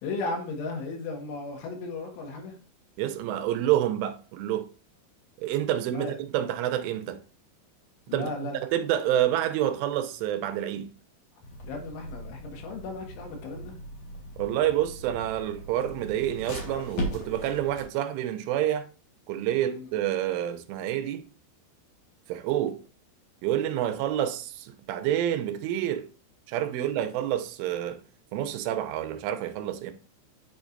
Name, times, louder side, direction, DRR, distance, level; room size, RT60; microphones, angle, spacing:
voice 1, 0.0-2.5 5.9-6.2 8.1-8.6 11.6-13.7 19.6-19.9, left 3 dB, 80° left, 4.1 m, -35 dB
voice 2, 3.0-4.7 5.4-7.2 8.1-8.3 8.6-10.9 14.4-18.9 19.3-21.3 22.3-22.8 23.4-26.1 26.5-28.0 28.3-29.9, right 12 dB, 85° right, 3.2 m, -28 dB
sound 1, 11.4-17.8, equal, 55° left, 1.8 m, -39 dB
8.6 x 6.1 x 2.6 m
omnidirectional pair, 5.6 m